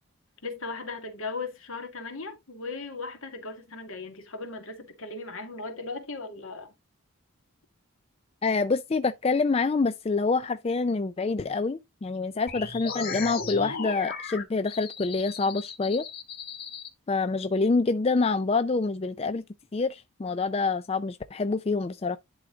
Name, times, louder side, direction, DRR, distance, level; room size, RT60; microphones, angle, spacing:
voice 1, 0.4-6.7, left 3 dB, 75° left, 2.3 m, -37 dB
voice 2, 8.4-16.0 17.1-19.4 19.7-22.2, left 4 dB, 25° left, 0.3 m, -26 dB
sound 1, 12.5-16.9, left 5 dB, 45° left, 2.4 m, -36 dB
11.0 x 3.7 x 3.9 m
head